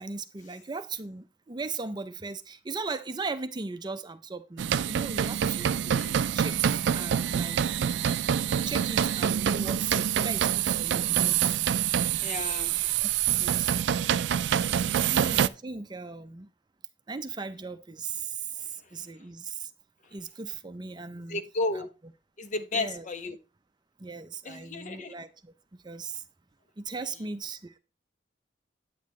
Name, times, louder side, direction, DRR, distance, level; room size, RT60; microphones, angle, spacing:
voice 1, 0.0-6.1 6.3-8.2 8.5-11.6 13.0-13.1 13.4-13.7 14.8-16.5 17.1-19.7 20.1-21.4 21.7-21.9 22.7-23.1 24.0-25.5 25.8-26.2 26.8-27.8, right 4 dB, 25° right, 0.6 m, -38 dB
sound 1, 4.6-15.5, right 9 dB, 70° right, 0.3 m, -26 dB
voice 2, 12.2-12.7 14.7-15.2 21.3-21.9 22.4-23.4 24.4-25.1, left 3 dB, 45° left, 0.9 m, -33 dB
9.2 x 8.7 x 3.2 m
head